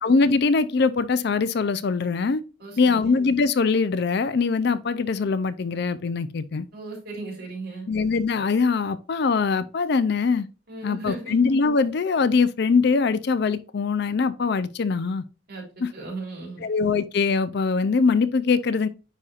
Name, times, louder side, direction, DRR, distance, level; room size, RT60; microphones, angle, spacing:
voice 1, 0.0-2.4 2.8-6.7 7.9-10.5 10.8-15.2 15.8-15.9 16.6-18.9, left 4 dB, 55° left, 0.4 m, -22 dB
voice 2, 2.6-3.1 6.7-7.9 10.7-11.3 15.5-16.7, right 3 dB, 50° right, 3.3 m, -36 dB
9.8 x 4.3 x 2.4 m
head